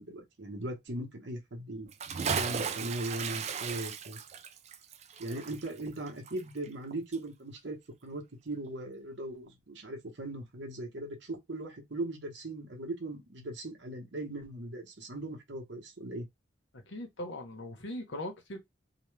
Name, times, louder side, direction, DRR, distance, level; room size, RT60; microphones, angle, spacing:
voice 1, 0.0-1.9 2.3-4.2 5.2-16.3, right 1 dB, 75° right, 1.0 m, -39 dB
Bathtub (filling or washing) / Splash splatter, 1.9-6.9 7.1-7.2, right 6 dB, 35° right, 0.3 m, -36 dB
voice 2, 16.7-18.6, left 1 dB, 85° left, 0.9 m, -40 dB
2.9 x 2.2 x 3.2 m
head